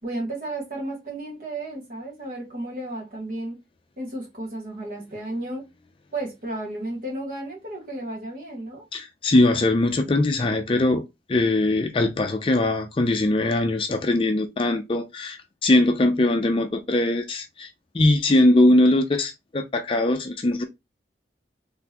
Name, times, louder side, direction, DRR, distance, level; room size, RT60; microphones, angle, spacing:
voice 1, 0.0-3.6 4.0-5.7 6.1-8.8, right 1 dB, 50° right, 1.7 m, -33 dB
voice 2, 8.9-17.7 17.9-20.6, left 2 dB, 30° left, 0.4 m, -21 dB
3.9 x 3.3 x 2.9 m
head